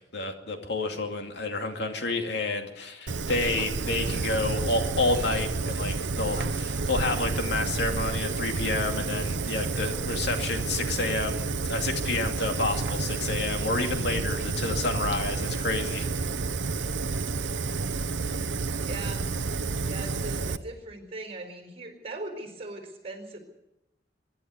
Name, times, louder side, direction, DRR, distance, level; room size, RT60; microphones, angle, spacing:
voice 1, 0.1-16.1, left 2 dB, 65° left, 4 dB, 2.5 m, -29 dB
Fire, 3.1-20.6, right 4 dB, 75° right, 0.8 m, -30 dB
voice 2, 18.8-19.3 19.9-23.4, right 2 dB, 35° right, 6 dB, 4.5 m, -40 dB
24.0 x 11.5 x 9.6 m, 0.93 s
head